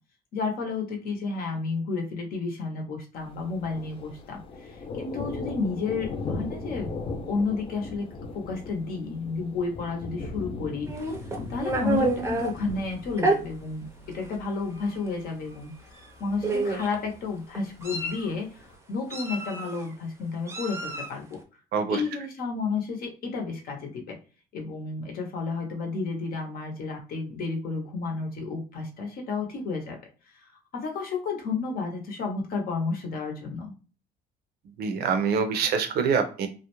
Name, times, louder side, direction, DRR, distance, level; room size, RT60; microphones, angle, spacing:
voice 1, 0.3-6.9 7.2-8.1 8.3-11.1 11.5-15.7 16.2-21.4 21.9-24.2 24.5-33.7, left 4 dB, 60° left, 2 dB, 0.7 m, -31 dB
Thunder, 3.2-18.8, left 3 dB, 35° left, 0.4 m, -39 dB
Meow, 10.9-12.5 13.2-13.4 14.2-14.3 14.7-14.9 15.9-16.1 16.4-17.0 17.6-18.3 19.1-19.8 20.5-21.2, right 2 dB, 15° right, 0.5 m, -28 dB
voice 2, 21.7-22.0 34.8-36.5, right 6 dB, 70° right, 7 dB, 0.6 m, -25 dB
2.4 x 2.1 x 2.9 m, 0.37 s
cardioid pair, 110°, 17 cm